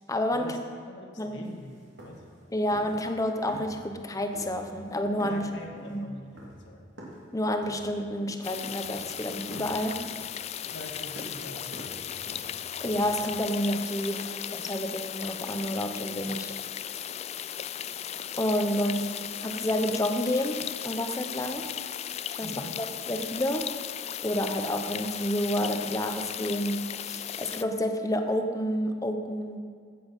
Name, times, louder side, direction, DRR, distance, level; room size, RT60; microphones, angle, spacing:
voice 1, 0.1-0.6 1.2-1.5 2.5-5.5 5.9-6.1 7.3-10.1 12.8-16.6 18.4-21.8 22.4-23.8 24.2-29.6, equal, 20° left, 6 dB, 0.8 m, -29 dB
voice 2, 0.9-1.7 2.0-2.3 5.2-6.9 10.7-12.3 22.4-22.8, left 1 dB, 70° left, 1 dB, 1.8 m, -44 dB
sound 1, 1.4-1.5 1.8-2.4 2.7-3.1 3.5-4.0 4.3-4.9 5.2-7.3 7.6-8.6 8.8-9.2 9.5-13.5, right 1 dB, 75° right, 2.6 m, -46 dB
sound 2, 8.4-27.6, left 10 dB, 35° left, 0.3 m, -36 dB
15.5 x 7.7 x 5.4 m, 2.2 s
head